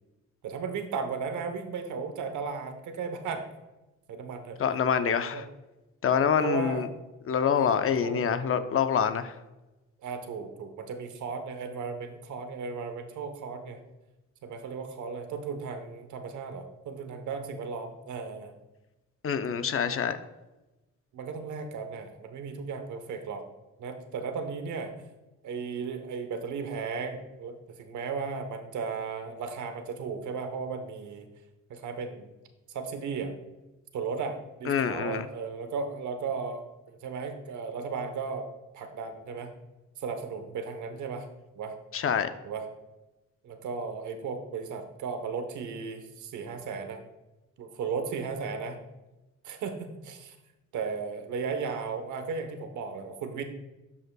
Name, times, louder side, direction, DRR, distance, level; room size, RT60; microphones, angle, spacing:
voice 1, 0.4-3.5 4.1-4.6 5.3-5.4 6.4-6.9 7.5-8.3 10.0-13.8 14.4-18.5 21.1-23.4 23.8-24.9 25.4-31.2 31.7-32.3 32.7-33.3 33.9-38.5 38.7-39.5 40.0-41.3 41.5-41.7 42.4-42.6 43.4-47.0 47.6-48.8 49.4-50.3 50.7-53.4, right 5 dB, 75° right, 7 dB, 1.0 m, -35 dB
voice 2, 4.6-5.5 6.0-6.9 7.3-9.3 19.2-20.2 34.7-35.2 41.9-42.3, left 7 dB, 45° left, 10 dB, 0.6 m, -26 dB
12.0 x 5.4 x 2.3 m, 1.0 s
cardioid pair, 90°, 30 cm